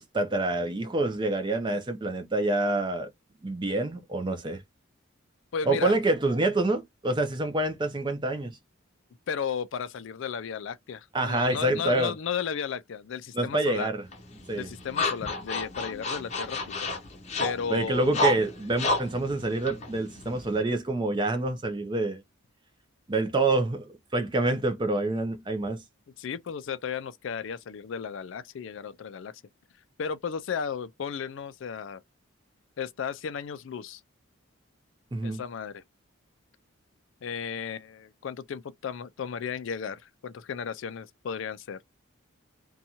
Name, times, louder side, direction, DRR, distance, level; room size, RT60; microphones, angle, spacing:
voice 1, 0.0-3.1 3.4-4.6 5.7-8.6 11.1-12.1 13.3-14.0 14.5-14.7 17.7-22.2 23.1-25.8 35.1-35.4, right 2 dB, 20° right, 0.4 m, -27 dB
voice 2, 5.5-6.0 9.3-13.9 14.6-16.9 17.4-18.2 26.2-29.3 30.0-32.0 32.8-34.0 35.2-35.8 37.2-41.8, left 7 dB, 60° left, 0.3 m, -34 dB
sound 1, 14.1-20.6, left 2 dB, 30° left, 0.7 m, -31 dB
2.6 x 2.3 x 2.8 m
head